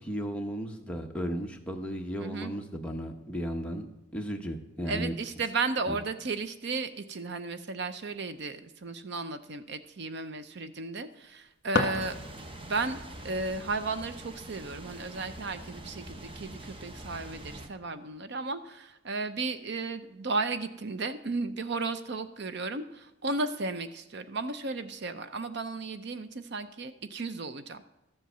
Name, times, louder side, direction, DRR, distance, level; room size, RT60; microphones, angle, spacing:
voice 1, 0.0-3.9 4.1-5.1 5.9-6.0, equal, 5° left, 2 dB, 0.9 m, -35 dB
voice 2, 2.2-2.5 4.9-12.2 12.6-27.8, right 3 dB, 55° right, 11 dB, 0.6 m, -34 dB
sound 1, 11.2-12.7, left 3 dB, 50° left, 1.5 m, -32 dB
sound 2, 12.0-17.7, right 1 dB, 25° right, 0.8 m, -44 dB
13.5 x 7.6 x 6.7 m, 0.98 s
head